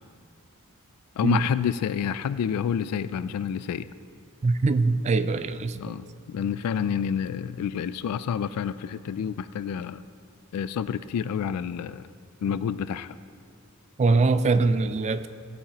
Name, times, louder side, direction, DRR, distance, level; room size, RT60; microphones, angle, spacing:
voice 1, 1.2-3.9 5.8-10.0 10.5-12.1 12.4-13.1, left 8 dB, 85° left, 15 dB, 0.3 m, -28 dB
voice 2, 4.4-5.9 14.0-15.3, right 3 dB, 30° right, 13 dB, 0.3 m, -22 dB
16.5 x 8.5 x 2.9 m, 2.2 s
head